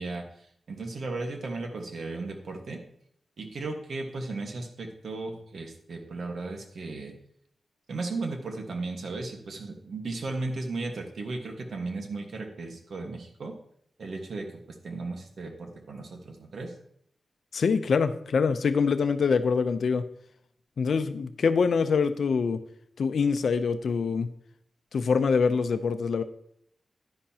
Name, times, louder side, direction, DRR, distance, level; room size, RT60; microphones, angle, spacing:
voice 1, 0.0-2.8 3.4-7.1 7.9-13.5 14.0-16.7, right 3 dB, 70° right, 3 dB, 1.5 m, -35 dB
voice 2, 17.5-20.0 20.8-22.6 23.0-24.3 24.9-26.2, left 5 dB, 75° left, 10 dB, 0.6 m, -24 dB
10.5 x 10.0 x 2.9 m, 0.69 s
wide cardioid pair, 155°, 0 cm